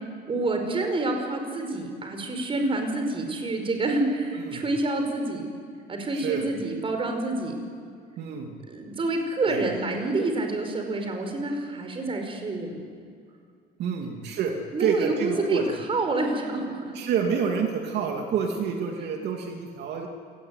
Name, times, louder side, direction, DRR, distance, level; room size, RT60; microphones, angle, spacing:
voice 1, 0.3-5.5 5.9-7.5 8.7-12.8 14.0-14.1 14.7-15.6 15.9-16.9, right 2 dB, 30° right, 4 dB, 5.2 m, -28 dB
voice 2, 6.1-6.4 8.2-8.6 9.5-9.6 13.8-14.5 14.8-15.7 16.9-20.1, right 6 dB, 75° right, 2 dB, 2.8 m, -28 dB
28.0 x 19.0 x 9.5 m, 2.2 s
cardioid pair, 135°, 17 cm